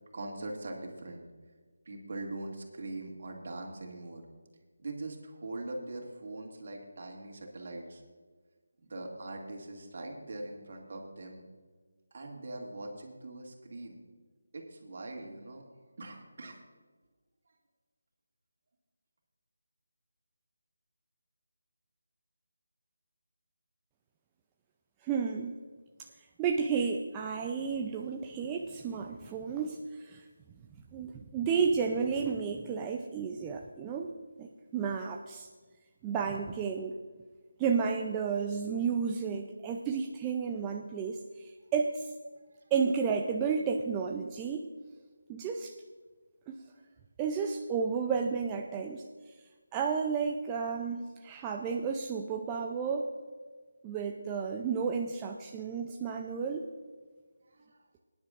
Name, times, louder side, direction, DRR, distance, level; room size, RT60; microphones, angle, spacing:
voice 1, 0.1-1.2 1.9-4.2 4.8-8.0 8.8-11.4 12.1-14.0 14.5-15.7 16.0-16.6 57.4-57.8, right 2 dB, 50° right, 1 dB, 2.3 m, -42 dB
voice 2, 25.0-25.5 26.4-30.2 30.9-34.1 34.4-35.5 36.0-37.0 37.6-42.1 42.7-44.7 45.3-45.7 46.5-46.6 47.2-49.1 49.7-53.1 53.8-56.6, right 6 dB, 15° right, 2 dB, 0.5 m, -32 dB
19.5 x 10.5 x 2.5 m, 1.5 s
figure-of-eight pair, 165°, 0 cm